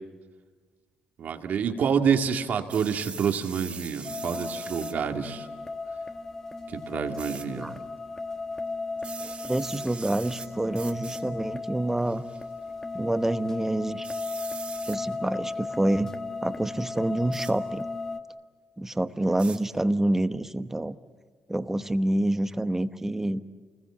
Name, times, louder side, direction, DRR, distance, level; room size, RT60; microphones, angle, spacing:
voice 1, 1.2-5.5 6.7-7.8, right 7 dB, 60° right, 5 dB, 2.2 m, -27 dB
sound 1, 2.7-5.0 7.2-7.4 9.0-10.5 10.7-11.2 12.0-12.4 14.0-15.0 17.3-17.5 19.4-19.6, right 5 dB, 40° right, 2.8 m, -41 dB
sound 2, 4.0-18.2, left 3 dB, 15° left, 1.6 m, -36 dB
voice 2, 9.2-12.2 12.9-14.1 14.9-16.1 16.4-17.8 18.8-21.0 21.5-23.4, right 1 dB, 10° right, 10 dB, 1.1 m, -27 dB
28.5 x 20.5 x 8.7 m, 1.5 s
cardioid pair, 85°, 3 cm